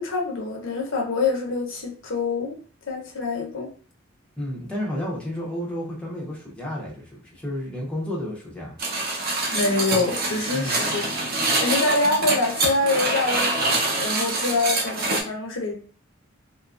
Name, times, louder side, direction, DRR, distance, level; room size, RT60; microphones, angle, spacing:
voice 1, 0.0-2.6 2.8-3.7 9.5-11.0 11.6-15.7, left 3 dB, 70° left, 0 dB, 0.7 m, -25 dB
voice 2, 4.4-8.8 10.5-11.0, equal, 5° left, -4 dB, 0.6 m, -31 dB
sound 1, 8.8-15.2, right 2 dB, 45° right, 0.6 m, -25 dB
2.7 x 2.3 x 2.3 m, 0.42 s
head